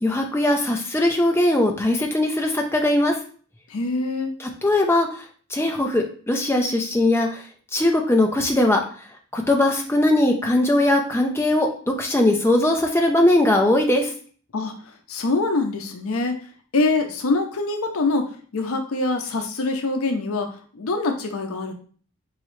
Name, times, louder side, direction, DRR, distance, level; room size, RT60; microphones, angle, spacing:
voice 1, 0.0-3.2 4.4-5.2 5.5-7.4 7.7-8.8 9.3-11.7 12.0-14.1, left 1 dB, 10° left, 2 dB, 0.6 m, -20 dB
voice 2, 3.7-4.3 14.5-16.4 16.7-21.7, left 3 dB, 80° left, 5 dB, 0.6 m, -24 dB
4.6 x 3.1 x 3.1 m, 0.43 s
head